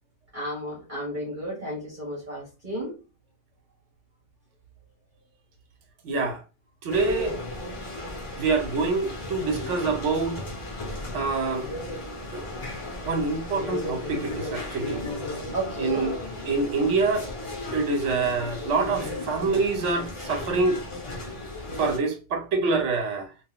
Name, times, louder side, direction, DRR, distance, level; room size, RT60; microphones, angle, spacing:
voice 1, 0.3-2.9 15.5-16.2, right 1 dB, 40° right, 1.2 m, -33 dB
voice 2, 6.0-6.4 6.8-7.4 8.4-10.4 11.1-11.7 12.3-12.4 13.0-15.0 15.8-16.2 16.4-17.3 17.7-20.8 21.8-23.3, right 3 dB, 75° right, 1.0 m, -26 dB
sound 1, 6.9-22.0, left 1 dB, 30° left, 0.7 m, -35 dB
3.6 x 2.5 x 2.3 m
omnidirectional pair, 1.3 m